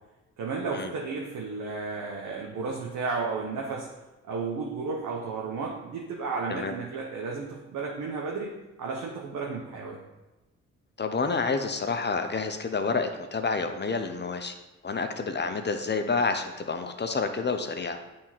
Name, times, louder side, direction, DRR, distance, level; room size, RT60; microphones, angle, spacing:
voice 1, 0.4-3.9 4.2-8.5 8.8-10.0, right 4 dB, 70° right, -1 dB, 1.1 m, -33 dB
voice 2, 11.0-14.6 14.8-18.0, left 4 dB, 35° left, 6 dB, 0.8 m, -29 dB
8.8 x 3.8 x 4.5 m, 1.1 s
supercardioid pair, 55°, 32 cm